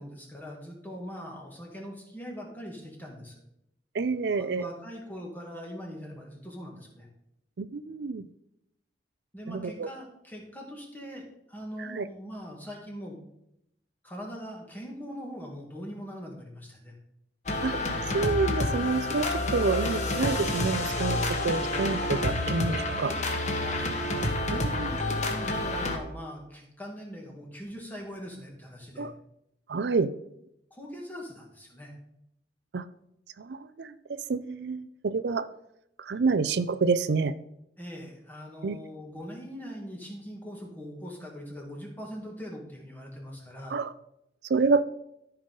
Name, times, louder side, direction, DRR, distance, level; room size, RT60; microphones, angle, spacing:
voice 1, 0.0-3.4 4.3-7.1 9.3-13.2 14.0-16.9 23.6-23.9 24.5-24.9 25.2-29.1 30.7-31.9 37.8-43.8, equal, 10° left, -1 dB, 2.2 m, -41 dB
voice 2, 3.9-4.7 7.6-8.2 9.5-9.9 11.8-12.1 17.6-17.7 18.1-23.1 24.5-25.0 29.0-29.1 29.7-30.1 32.7-32.8 33.4-35.5 36.0-37.3 38.6-38.8 43.7-43.9 44.5-44.8, right 4 dB, 70° right, 13 dB, 0.5 m, -28 dB
sound 1, 17.5-26.0, left 2 dB, 40° left, 1.3 m, -29 dB
13.5 x 5.6 x 3.8 m, 0.79 s
head